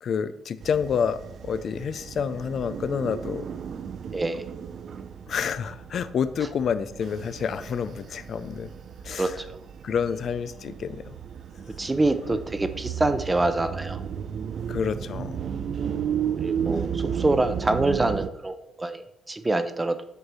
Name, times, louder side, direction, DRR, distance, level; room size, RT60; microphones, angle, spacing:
voice 1, 0.0-3.5 5.3-8.7 9.0-9.3 9.8-11.2 12.3-12.4 14.7-15.4, left 7 dB, 60° left, 12 dB, 0.4 m, -28 dB
sound 1, 0.6-18.3, right 8 dB, 60° right, 0.4 m, -34 dB
voice 2, 4.1-4.5 9.2-9.5 11.8-14.0 16.4-20.0, right 2 dB, 20° right, 10 dB, 0.7 m, -25 dB
8.0 x 2.7 x 6.1 m, 0.78 s
cardioid pair, 90°, 0 cm